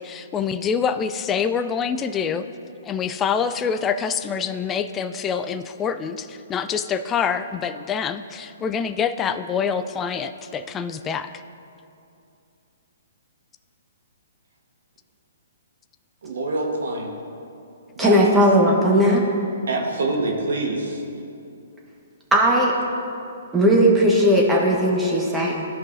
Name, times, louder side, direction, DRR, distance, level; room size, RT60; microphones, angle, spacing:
voice 1, 0.0-2.4 2.8-11.3, left 6 dB, 20° left, 9 dB, 0.3 m, -26 dB
voice 2, 16.2-17.1 18.0-18.7 19.7-21.0, right 2 dB, 75° right, 1 dB, 1.3 m, -26 dB
voice 3, 18.0-19.2 22.3-22.7 23.5-25.6, equal, 10° right, -3 dB, 1.4 m, -17 dB
14.0 x 5.3 x 2.7 m, 2.6 s
hypercardioid pair, 130°, 0 cm